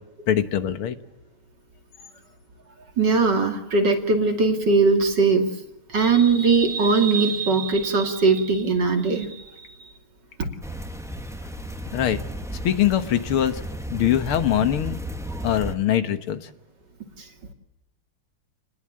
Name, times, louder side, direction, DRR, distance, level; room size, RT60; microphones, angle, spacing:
voice 1, 0.3-1.0 11.9-12.2 12.6-13.6 13.9-15.0 15.4-16.4, left 10 dB, 85° left, 10 dB, 2.2 m, -22 dB
voice 2, 3.0-5.5 5.9-9.4, right 4 dB, 55° right, 4 dB, 3.2 m, -20 dB
sound 1, 10.6-15.7, right 1 dB, ahead, 1.3 m, -34 dB
28.5 x 20.0 x 7.6 m, 0.90 s
omnidirectional pair, 2.3 m